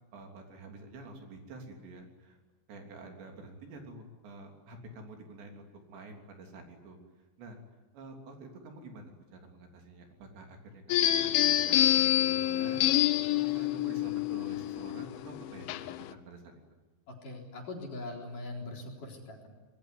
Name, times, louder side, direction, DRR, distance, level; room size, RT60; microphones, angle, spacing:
voice 1, 0.1-2.4 2.7-7.0 7.4-7.6 7.9-12.9 13.4-16.4, right 2 dB, 70° right, 3 dB, 5.4 m, -48 dB
sound 1, 10.9-16.1, left 12 dB, 85° left, 3.4 m, -27 dB
voice 2, 17.1-19.5, left 2 dB, 45° left, 0 dB, 5.2 m, -41 dB
25.5 x 21.0 x 9.6 m, 1.2 s
omnidirectional pair, 5.3 m